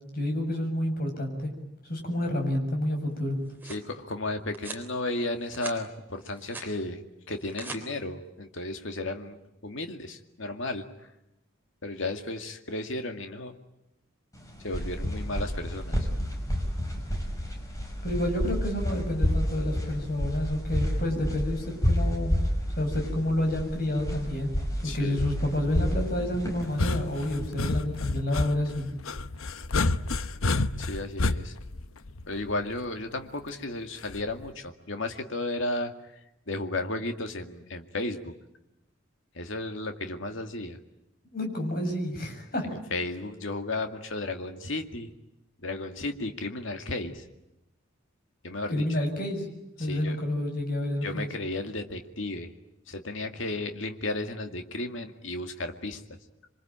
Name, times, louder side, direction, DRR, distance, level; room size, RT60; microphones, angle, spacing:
voice 1, 0.1-1.5 1.9-3.4 18.0-22.3 22.8-24.5 24.8-28.9 41.3-42.8 48.7-49.5 49.8-51.3, left 1 dB, 45° left, 3 dB, 7.1 m, -29 dB
sound 1, 3.2-3.9 4.5-4.9 5.3-5.8 6.2-6.7 7.3-7.8, right 2 dB, 10° right, 3.7 m, -42 dB
voice 2, 3.7-9.4 9.6-10.8 11.8-13.5 14.6-15.9 24.8-25.2 30.8-31.5 32.3-35.9 36.5-38.3 39.3-40.8 42.9-45.1 45.6-47.2 48.4-49.1 49.8-50.2 51.0-52.5 52.9-56.0, left 2 dB, 65° left, 5 dB, 2.2 m, -34 dB
sound 2, 14.4-27.6, equal, 15° left, 5.6 m, -29 dB
sound 3, 26.6-32.7 34.1-34.5, left 2 dB, 80° left, 1.0 m, -29 dB
27.5 x 24.0 x 8.9 m, 0.88 s
head